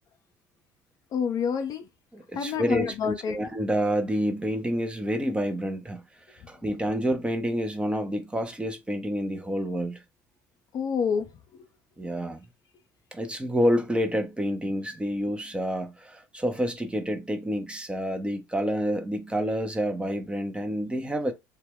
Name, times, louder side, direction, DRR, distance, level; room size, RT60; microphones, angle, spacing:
voice 1, 1.1-1.9 2.3-3.4 10.7-11.3 11.6-11.7, left 6 dB, 45° left, 0.5 m, -28 dB
voice 2, 2.1-6.0 6.3-10.0 12.0-12.4 13.1-21.3, equal, 10° right, 0.5 m, -28 dB
2.2 x 2.1 x 3.5 m
figure-of-eight pair, 60°, 9 cm